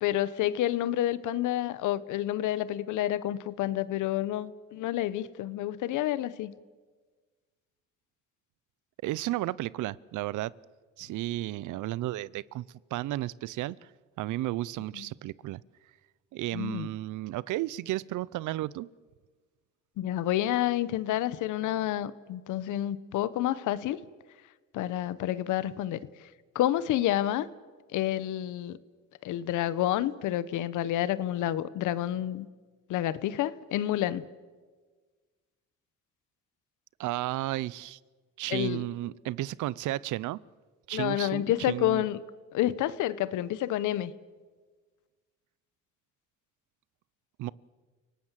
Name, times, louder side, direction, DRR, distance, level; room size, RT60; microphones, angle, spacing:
voice 1, 0.0-6.5 14.9-15.1 16.5-16.9 20.0-24.0 24.7-26.0 26.5-27.5 27.9-28.8 29.2-32.5 32.9-34.2 38.5-38.8 40.9-42.2 42.5-44.1, left 13 dB, 90° left, 1.0 m, -29 dB
voice 2, 9.0-10.5 11.0-12.6 12.9-13.8 14.2-15.6 16.3-18.9 37.0-38.0 38.4-40.4 40.9-42.1 47.4-47.5, right 16 dB, 85° right, 0.6 m, -33 dB
30.0 x 18.0 x 7.5 m
cardioid pair, 100°, 30 cm